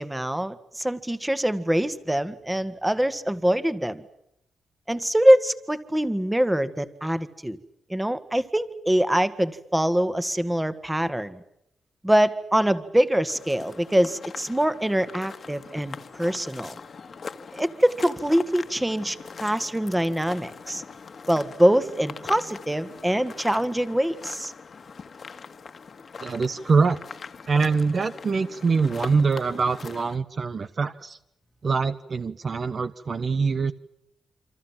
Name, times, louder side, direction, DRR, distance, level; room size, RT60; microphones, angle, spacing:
voice 1, 0.0-4.0 4.9-7.6 7.9-11.4 12.0-16.8 17.5-20.8 21.3-24.5, equal, 5° right, 12 dB, 1.8 m, -24 dB
sound 1, 13.3-30.2, left 5 dB, 40° left, 1.9 m, -42 dB
voice 2, 26.2-27.0 27.5-31.2 31.6-33.7, right 4 dB, 35° right, 11 dB, 1.1 m, -24 dB
28.0 x 27.0 x 7.5 m, 0.80 s
wide cardioid pair, 140°, 0 cm